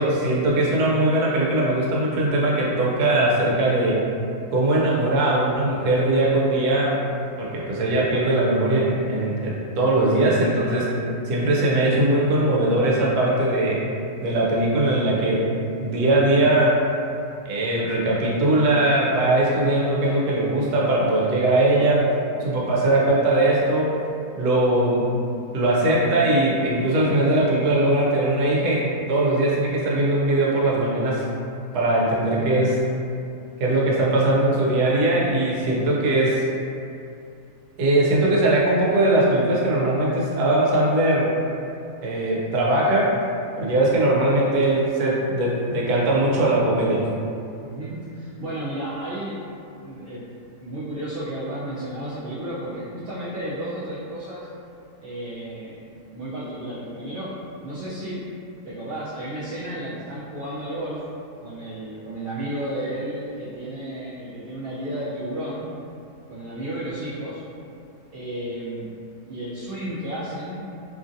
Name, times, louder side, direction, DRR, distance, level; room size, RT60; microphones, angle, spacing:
voice 1, 0.0-4.0 4.5-7.1 7.4-11.0 11.2-13.8 14.2-15.5 15.8-16.9 17.5-22.1 22.4-23.9 24.3-25.0 25.5-31.3 31.7-32.8 33.6-36.5 37.8-41.3 42.0-43.2 43.6-47.1, right 1 dB, 85° right, -4 dB, 1.2 m, -20 dB
voice 2, 47.6-49.3 49.8-50.2 50.6-54.5 55.0-55.8 56.1-57.3 57.6-58.2 58.6-61.0 61.4-65.7 66.3-67.4 68.1-68.9 69.3-70.6, right 1 dB, 70° right, -12 dB, 0.5 m, -32 dB
2.9 x 2.5 x 2.5 m, 2.6 s
omnidirectional pair, 1.6 m